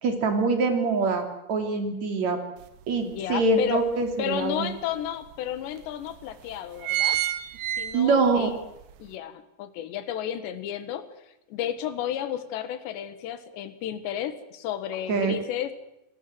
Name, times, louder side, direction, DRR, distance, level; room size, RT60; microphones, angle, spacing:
voice 1, 0.0-2.4 2.9-4.7 7.9-8.5 15.1-15.4, right 3 dB, 45° right, 5 dB, 3.8 m, -24 dB
sound 1, 2.6-2.7 3.2-4.3 5.0-5.1 5.3-5.4 6.1-6.3 6.6-8.4 8.8-8.9, right 12 dB, 70° right, 2.0 m, -28 dB
voice 2, 3.0-3.8 4.2-7.2 7.8-8.5 9.0-11.0 11.5-15.7, left 10 dB, 80° left, 11 dB, 3.8 m, -32 dB
27.0 x 18.5 x 7.8 m, 0.88 s
omnidirectional pair, 5.0 m